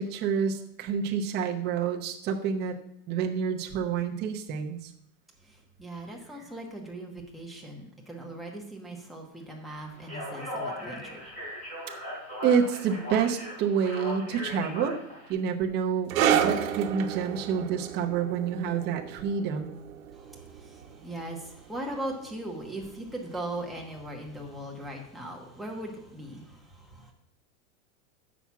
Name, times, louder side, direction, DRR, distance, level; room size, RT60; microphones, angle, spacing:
voice 1, 0.0-2.8 3.1-4.9 12.4-15.0 15.3-19.7, right 7 dB, 25° right, 3 dB, 0.8 m, -28 dB
voice 2, 5.4-11.3 20.1-27.1, right 1 dB, ahead, 1 dB, 1.1 m, -39 dB
Speech, 10.0-15.3, left 1 dB, 15° left, 4.2 m, -38 dB
sound 1, 16.1-23.1 23.3-23.6 24.3-24.4, right 9 dB, 90° right, 1.2 m, -31 dB
7.0 x 6.2 x 7.1 m, 0.72 s
supercardioid pair, 160°, 40 cm